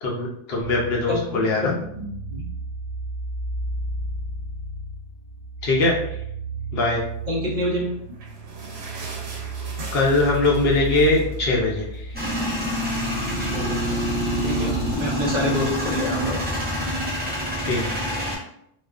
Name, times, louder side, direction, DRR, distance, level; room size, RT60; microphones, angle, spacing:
voice 1, 0.0-1.7 5.6-6.0 6.7-7.0 9.9-12.1 12.4-12.5 17.6-17.9, left 2 dB, 75° left, -1 dB, 0.9 m, -21 dB
sound 1, 0.6-14.9, right 3 dB, 65° right, 1.2 m, -33 dB
voice 2, 1.6-2.0 2.3-2.4 7.3-7.9 13.4-14.0 14.4-16.4, left 1 dB, 50° right, -5 dB, 0.9 m, -27 dB
sound 2, 7.7-12.5 12.9-13.0 13.2-13.4 14.1-14.2, right 3 dB, 85° right, 0.9 m, -40 dB
Male speech man speaking / Vehicle / Engine starting, 12.1-18.4, equal, 10° right, 0.7 m, -26 dB
2.4 x 2.2 x 2.3 m, 0.74 s
omnidirectional pair, 1.1 m